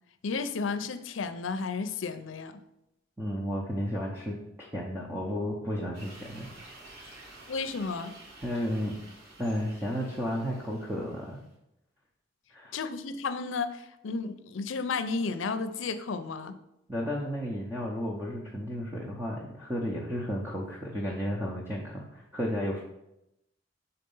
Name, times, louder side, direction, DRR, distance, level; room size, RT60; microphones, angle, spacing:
voice 1, 0.2-2.6 7.5-8.2 12.7-16.5, left 4 dB, 75° left, 0.5 m, -33 dB
voice 2, 3.2-6.5 6.9-7.2 8.4-9.0 9.4-11.4 12.5-12.8 16.9-22.8, equal, 10° right, 0.7 m, -33 dB
sound 1, 5.9-11.5, right 2 dB, 80° right, 2.5 m, -51 dB
6.6 x 4.1 x 5.4 m
head